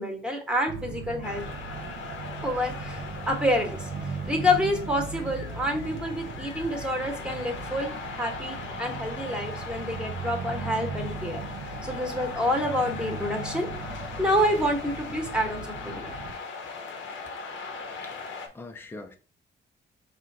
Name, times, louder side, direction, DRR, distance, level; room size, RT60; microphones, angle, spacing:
voice 1, 0.0-1.4 2.4-11.4 11.8-16.1, left 1 dB, 5° right, 1.2 m, -28 dB
sound 1, 0.7-16.3, right 4 dB, 60° right, 0.6 m, -38 dB
sound 2, 1.2-18.5, left 4 dB, 90° left, 0.8 m, -39 dB
voice 2, 18.0-19.2, left 2 dB, 10° left, 0.5 m, -43 dB
4.4 x 2.5 x 3.8 m
cardioid pair, 95°, 19 cm